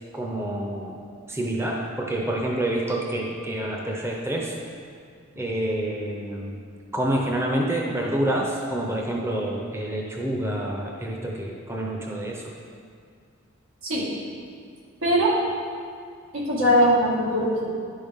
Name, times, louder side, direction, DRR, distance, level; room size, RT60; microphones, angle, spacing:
voice 1, 0.1-1.0 1.3-4.5 5.4-6.6 6.9-12.4, right 1 dB, 10° right, -1 dB, 0.6 m, -27 dB
voice 2, 15.0-15.4 16.3-17.7, equal, 80° right, -5 dB, 1.9 m, -21 dB
11.0 x 5.5 x 3.5 m, 2.2 s
head